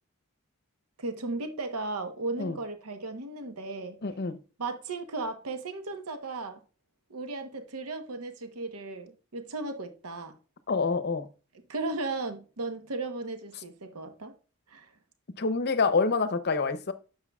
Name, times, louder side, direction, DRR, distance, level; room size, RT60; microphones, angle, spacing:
voice 1, 1.0-4.0 4.6-6.6 7.1-10.3 11.7-14.3 14.7-14.9, right 3 dB, 85° right, 1.0 m, -35 dB
voice 2, 4.0-4.4 10.7-11.3 15.4-16.9, left 4 dB, 50° left, 0.7 m, -27 dB
9.9 x 6.6 x 2.3 m
head